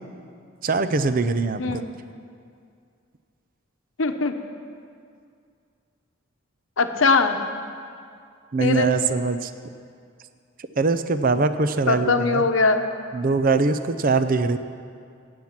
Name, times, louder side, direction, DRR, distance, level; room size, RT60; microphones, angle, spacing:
voice 1, 0.6-1.8 8.5-9.5 10.6-12.5 13.1-14.6, right 4 dB, 45° right, 11 dB, 0.5 m, -22 dB
voice 2, 4.0-4.4 6.8-7.5 8.6-8.9 11.9-12.8, left 3 dB, 75° left, 7 dB, 0.9 m, -21 dB
16.0 x 9.4 x 5.9 m, 2.3 s
head